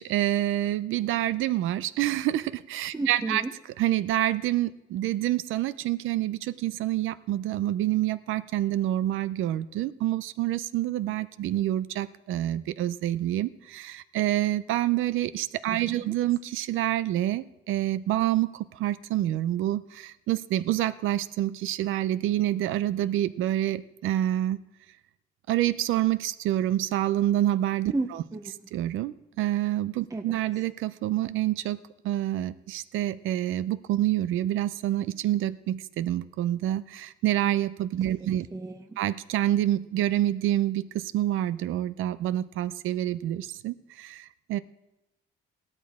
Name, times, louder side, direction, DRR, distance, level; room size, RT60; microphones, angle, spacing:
voice 1, 0.0-3.4 3.8-24.6 25.5-27.9 28.7-38.5 39.0-44.6, right 13 dB, 85° right, 15 dB, 0.6 m, -27 dB
voice 2, 2.9-3.5 15.7-16.1 27.9-28.5 30.1-30.2 38.2-39.0, right 3 dB, 15° right, 5 dB, 0.7 m, -34 dB
17.0 x 13.0 x 3.6 m, 0.92 s
cardioid pair, 90°, 20 cm